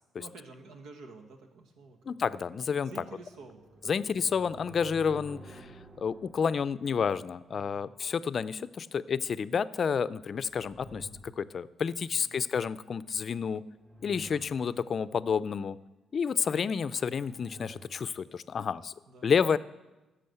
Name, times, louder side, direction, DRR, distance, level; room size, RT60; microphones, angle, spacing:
voice 1, 0.2-2.4 2.8-4.4 7.5-7.9 12.1-12.5 19.1-19.4, right 3 dB, 85° right, 4 dB, 1.4 m, -51 dB
voice 2, 2.1-2.9 3.9-5.7 6.0-13.6 14.0-15.8 16.1-18.9 19.2-19.6, left 6 dB, 50° left, 16 dB, 0.4 m, -30 dB
sound 1, 2.6-8.0 10.0-11.9 13.4-15.0 16.8-18.1, right 1 dB, 40° right, 2.2 m, -52 dB
13.5 x 6.3 x 7.8 m, 1.1 s
cardioid pair, 90°, 0 cm